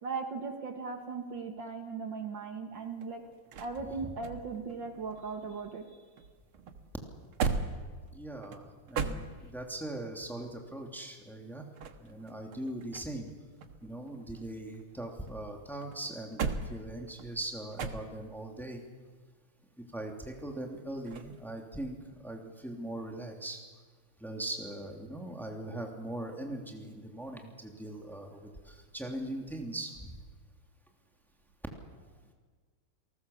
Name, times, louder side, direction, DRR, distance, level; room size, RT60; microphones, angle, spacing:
voice 1, 0.0-3.2 3.6-6.1, right 4 dB, 60° right, 5 dB, 2.5 m, -38 dB
sound 1, 2.7-5.9 6.2-9.8 11.5-13.3 13.6-15.4 15.8-18.4 21.1-21.4, right 5 dB, 80° right, 2.3 m, -38 dB
voice 2, 8.1-11.6 12.0-13.3 13.8-18.8 19.8-23.6 24.2-28.4 28.6-30.2, right 1 dB, ahead, 2 dB, 2.7 m, -40 dB
29.5 x 19.0 x 7.2 m, 1.5 s
omnidirectional pair, 2.3 m